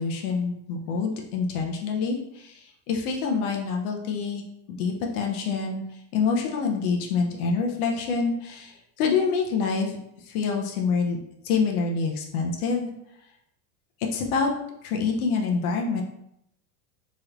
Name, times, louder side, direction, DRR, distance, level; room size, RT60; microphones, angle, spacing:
voice 1, 0.0-4.4 4.7-5.8 6.1-10.0 10.3-11.2 11.4-12.9 14.1-14.5 14.8-16.0, left 5 dB, 70° left, 1 dB, 0.7 m, -26 dB
3.0 x 2.9 x 2.4 m, 0.79 s
supercardioid pair, 130°, 45 cm